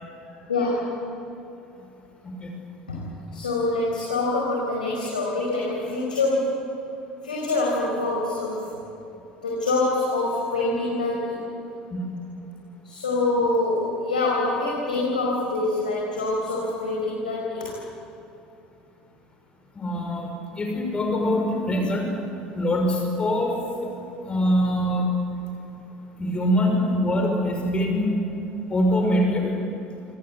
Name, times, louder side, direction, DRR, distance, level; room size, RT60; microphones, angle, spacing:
voice 1, 0.2-0.9 2.9-6.7 7.2-8.7 9.4-11.4 12.8-17.7, left 2 dB, 75° left, -3 dB, 5.1 m, -25 dB
voice 2, 19.8-20.3 20.6-22.1 22.6-23.5 24.2-25.1 26.2-28.1 28.7-29.5, equal, 25° left, 2 dB, 6.0 m, -23 dB
27.5 x 27.0 x 8.0 m, 2.8 s
figure-of-eight pair, 65°, 4 cm